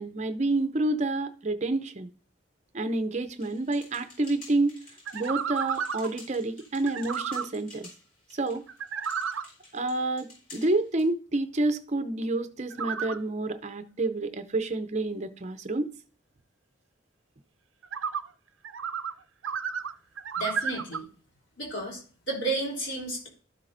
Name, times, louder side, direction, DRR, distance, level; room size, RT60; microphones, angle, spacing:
voice 1, 0.0-2.1 2.7-4.7 5.1-7.9 8.3-8.6 9.7-15.9, right 2 dB, 35° right, 0.6 m, -29 dB
sound 1, 3.4-11.1, left 2 dB, 45° left, 4.5 m, -51 dB
sound 2, 5.1-6.1 6.9-7.5 8.7-9.4 12.7-13.2 17.8-18.2 18.6-19.1 19.4-21.0, right 6 dB, 75° right, 0.5 m, -32 dB
voice 2, 20.3-21.1 21.6-22.0 22.3-23.3, right 2 dB, 70° left, 3.3 m, -32 dB
12.5 x 7.4 x 2.6 m
head